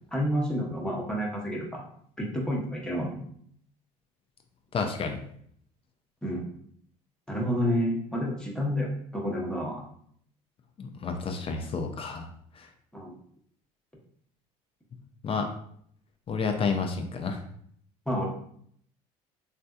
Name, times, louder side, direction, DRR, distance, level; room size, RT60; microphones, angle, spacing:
voice 1, 0.1-1.8 2.2-3.2 6.2-6.5 7.3-8.9 9.1-9.8 12.9-13.1 18.1-18.2, equal, 5° left, -2 dB, 0.8 m, -29 dB
voice 2, 4.7-5.2 10.8-12.3 12.6-12.7 15.2-15.5 16.3-17.4, left 4 dB, 35° left, 5 dB, 0.5 m, -30 dB
3.2 x 2.6 x 2.3 m, 0.64 s
supercardioid pair, 85°, 16 cm